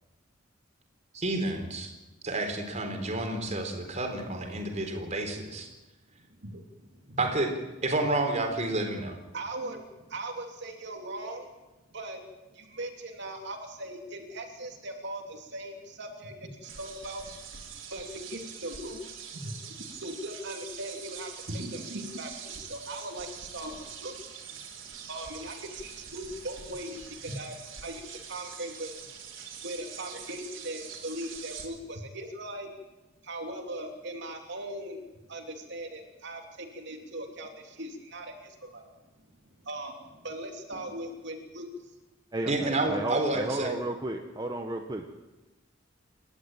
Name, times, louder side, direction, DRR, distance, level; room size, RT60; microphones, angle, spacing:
voice 1, 1.1-1.9 2.2-5.7 7.2-7.5 7.8-9.2 42.5-43.7, right 2 dB, 35° right, 4 dB, 4.2 m, -30 dB
voice 2, 6.3-7.2 9.3-11.5 11.9-12.2 12.5-17.3 17.9-19.0 19.3-24.2 24.9-28.9 29.6-32.7 33.2-35.0 35.3-38.8 39.6-41.9, right 1 dB, 65° right, 3 dB, 3.0 m, -39 dB
sound 1, 16.6-31.7, right 7 dB, 85° right, 4.2 m, -44 dB
voice 3, 42.3-45.1, right 1 dB, 20° right, 3 dB, 1.3 m, -33 dB
28.5 x 12.5 x 9.1 m, 1.1 s
head